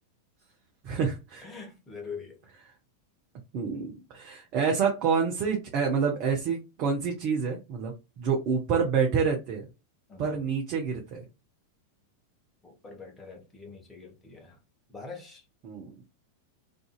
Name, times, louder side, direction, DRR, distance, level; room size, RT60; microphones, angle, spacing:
voice 1, 0.8-1.5 3.5-7.9 8.2-9.7 10.2-11.2 15.6-15.9, right 6 dB, 40° right, 0.7 m, -27 dB
voice 2, 1.4-2.4 10.1-10.3 12.6-14.6 14.9-15.4, left 5 dB, 15° left, 0.9 m, -43 dB
2.6 x 2.5 x 2.3 m
figure-of-eight pair, 90°, 0 cm